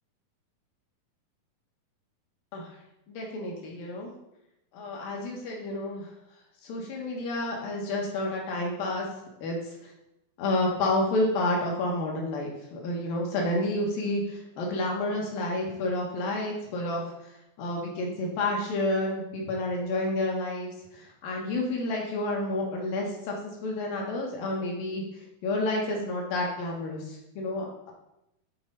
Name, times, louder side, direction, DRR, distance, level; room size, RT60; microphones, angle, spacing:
voice 1, 3.1-4.1 4.7-6.1 6.6-9.1 9.4-9.6 9.8-9.9 10.4-17.0 17.6-23.3 23.6-25.0 25.4-27.9, left 2 dB, 75° left, -1 dB, 2.9 m, -30 dB
7.8 x 4.2 x 4.0 m, 0.85 s
omnidirectional pair, 4.1 m